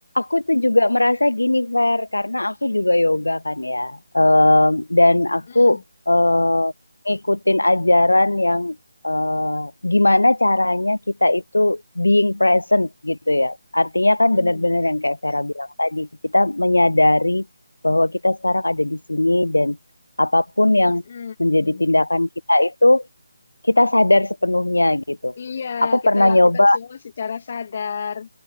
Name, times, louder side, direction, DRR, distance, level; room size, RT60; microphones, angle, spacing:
voice 1, 0.1-5.8 6.1-6.7 7.1-8.8 9.0-16.1 16.3-17.4 17.8-19.8 20.2-21.0 21.4-23.0 23.6-25.3 25.9-26.8, left 1 dB, 90° left, 0.4 m, -18 dB
voice 2, 5.5-5.8 14.3-14.7 20.9-21.8 25.4-28.3, left 6 dB, 45° left, 2.9 m, -32 dB
figure-of-eight pair, 155°, 0 cm